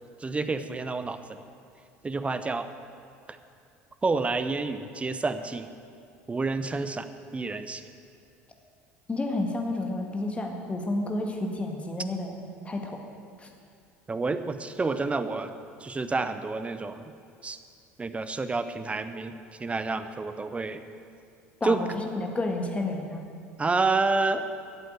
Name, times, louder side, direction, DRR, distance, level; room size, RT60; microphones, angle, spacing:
voice 1, 0.2-1.4 2.0-2.7 4.0-5.7 6.3-7.1 7.3-7.8 14.1-15.5 15.8-17.0 17.4-17.6 18.0-19.3 19.6-20.8 21.6-21.8 23.6-24.6, right 3 dB, 15° right, 10 dB, 0.8 m, -29 dB
voice 2, 9.1-12.4 12.6-13.0 13.4-13.5 21.6-23.3, left 2 dB, 15° left, 2 dB, 1.8 m, -30 dB
13.5 x 8.2 x 8.0 m, 2.4 s
figure-of-eight pair, 65°, 7 cm